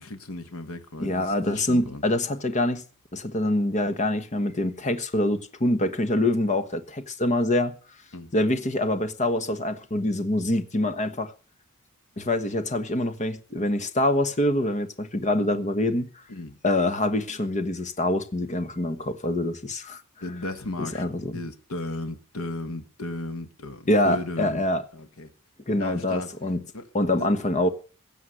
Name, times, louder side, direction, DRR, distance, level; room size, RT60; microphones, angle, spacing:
voice 1, 0.0-2.0 8.1-8.3 16.3-16.6 20.2-24.7 24.9-25.3 25.8-26.3 26.7-26.9 27.2-27.3, left 2 dB, 70° left, 1.4 m, -35 dB
voice 2, 1.0-2.8 3.1-7.7 8.3-11.3 12.2-16.1 16.6-20.0 20.8-21.3 23.9-24.8 25.7-26.6 26.9-27.7, left 1 dB, 35° left, 1.3 m, -25 dB
16.0 x 7.0 x 7.9 m
head